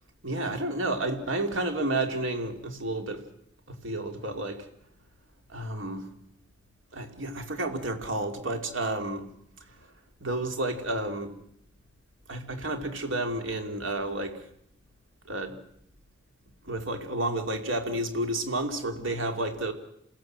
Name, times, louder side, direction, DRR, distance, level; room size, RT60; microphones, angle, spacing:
voice 1, 0.2-3.2 3.8-4.7 5.5-6.1 6.9-9.3 10.2-11.3 12.3-14.4 15.3-15.6 16.7-19.7, right 1 dB, 75° right, 6 dB, 2.9 m, -31 dB
28.0 x 16.5 x 7.6 m, 0.77 s
head